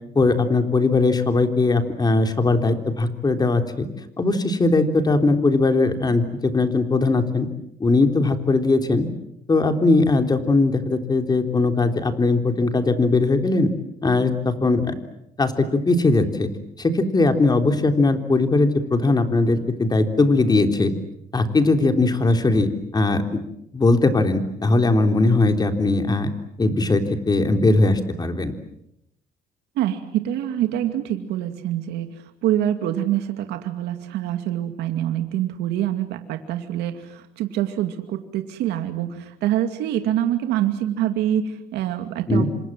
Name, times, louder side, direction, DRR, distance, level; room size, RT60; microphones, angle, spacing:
voice 1, 0.1-3.9 4.2-7.5 7.8-9.1 9.5-13.7 14.0-14.9 15.4-16.5 16.8-20.9 21.3-23.4 23.7-26.3 26.6-28.5 42.3-42.5, left 3 dB, 25° left, 7 dB, 3.5 m, -19 dB
voice 2, 29.8-32.1 32.4-42.4, right 11 dB, 85° right, 7 dB, 2.4 m, -25 dB
28.5 x 26.0 x 7.5 m, 0.79 s
cardioid pair, 110°, 17 cm